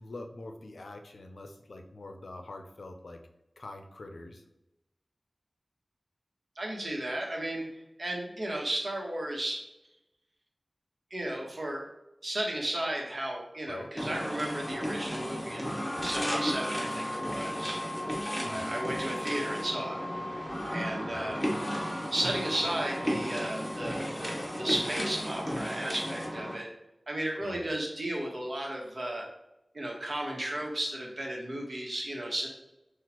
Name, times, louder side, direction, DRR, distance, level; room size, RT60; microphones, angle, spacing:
voice 1, 0.0-3.2 3.6-4.4 13.7-13.9 18.4-18.7 21.1-21.3 27.4-27.7, left 2 dB, 85° left, 6 dB, 0.5 m, -44 dB
voice 2, 6.6-7.7 8.0-9.6 11.1-11.8 12.2-17.8 18.5-20.1 20.7-21.4 21.8-26.7 27.1-29.3 29.7-32.5, right 1 dB, 55° right, -1 dB, 1.1 m, -34 dB
sound 1, 14.0-26.5, equal, 15° left, 1.1 m, -34 dB
6.0 x 2.4 x 2.9 m, 0.90 s
wide cardioid pair, 65°, 0 cm